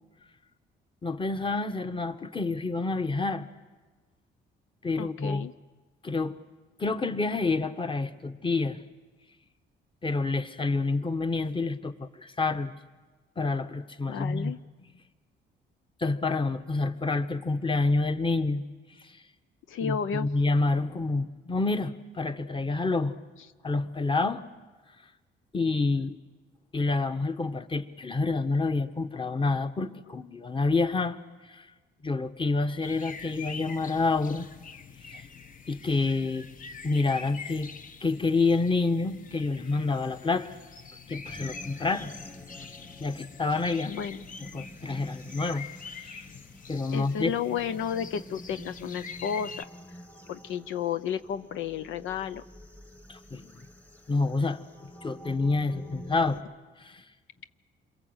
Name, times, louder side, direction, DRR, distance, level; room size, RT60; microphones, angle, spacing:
voice 1, 1.0-3.5 4.8-5.5 6.0-6.4 6.8-8.8 10.0-12.7 13.4-14.5 16.0-18.6 19.0-19.2 19.8-23.1 23.6-24.4 25.5-26.2 26.7-31.2 31.4-31.7 32.0-34.5 35.1-35.3 35.7-36.5 36.8-37.7 38.0-40.6 41.1-42.1 43.0-43.9 44.4-46.3 46.7-47.3 53.1-53.6 54.1-54.6 55.0-56.4 56.8-57.0, left 3 dB, 25° left, 9 dB, 1.4 m, -28 dB
voice 2, 5.0-5.5 14.1-14.6 19.7-20.3 43.9-44.2 46.9-49.7 50.3-52.4, left 8 dB, 85° left, 12 dB, 0.8 m, -32 dB
sound 1, 32.8-49.6, left 5 dB, 45° left, 1.0 m, -45 dB
sound 2, 41.2-56.4, equal, 10° left, 1.3 m, -48 dB
28.0 x 23.0 x 8.1 m, 1.3 s
cardioid pair, 90°, 20 cm